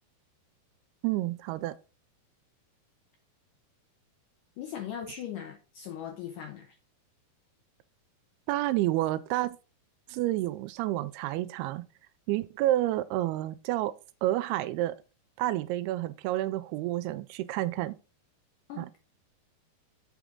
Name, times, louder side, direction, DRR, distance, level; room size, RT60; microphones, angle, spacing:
voice 1, 1.0-1.8 8.5-9.6 10.1-11.9 12.3-13.9 14.2-15.0 15.4-18.0 18.7-19.0, right 15 dB, 85° right, 2.4 m, -29 dB
voice 2, 4.6-6.8 18.7-19.0, left 9 dB, 80° left, 1.9 m, -39 dB
7.2 x 5.5 x 3.7 m
omnidirectional pair, 4.7 m